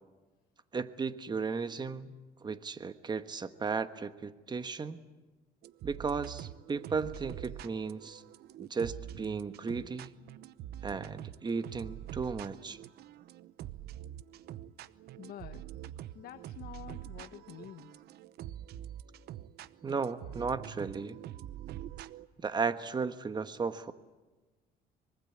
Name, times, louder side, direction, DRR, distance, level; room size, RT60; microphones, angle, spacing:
voice 1, 0.7-2.1 2.4-5.0 5.8-8.2 8.6-10.1 10.8-12.8 19.8-21.2 22.4-23.9, right 5 dB, 25° right, 11 dB, 1.3 m, -35 dB
sound 1, 5.6-22.3, right 12 dB, 75° right, 0.9 m, -45 dB
voice 2, 15.2-15.7 16.1-18.0, left 11 dB, 65° left, 9 dB, 1.2 m, -48 dB
24.5 x 23.0 x 8.6 m, 1.2 s
cardioid pair, 110°, 17 cm